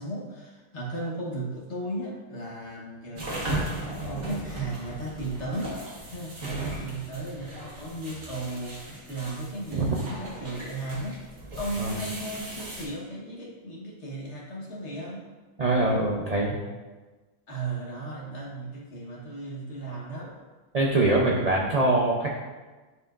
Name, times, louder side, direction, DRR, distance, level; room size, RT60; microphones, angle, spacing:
voice 1, 0.0-5.8 6.1-11.2 11.6-15.3 17.5-20.3 20.9-21.3, right 2 dB, 55° left, -3 dB, 1.5 m, -35 dB
sound 1, 3.2-12.8, right 1 dB, 65° right, 1.8 m, -37 dB
voice 2, 15.6-16.5 20.7-22.3, right 2 dB, 50° right, -1 dB, 0.5 m, -23 dB
10.5 x 4.5 x 2.5 m, 1.3 s
omnidirectional pair, 1.5 m